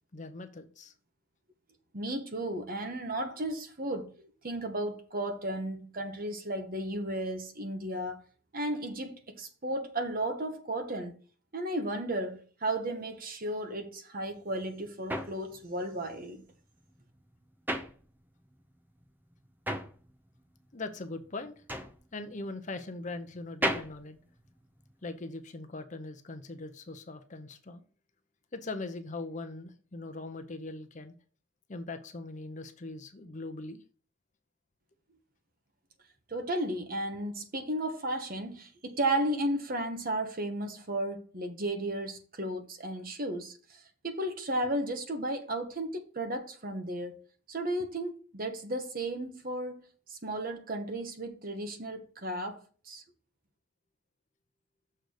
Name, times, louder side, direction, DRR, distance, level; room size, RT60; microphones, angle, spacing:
voice 1, 0.1-0.9 20.7-21.6 22.1-24.2 25.0-27.8 28.5-31.1 31.7-33.8, left 2 dB, 35° left, 0.7 m, -41 dB
voice 2, 1.9-4.1 4.4-8.2 8.5-11.1 11.5-16.4 36.3-53.0, right 1 dB, 40° right, 1.1 m, -34 dB
sound 1, 14.3-18.6 18.9-25.1, equal, 10° right, 0.6 m, -37 dB
6.6 x 3.9 x 6.4 m
head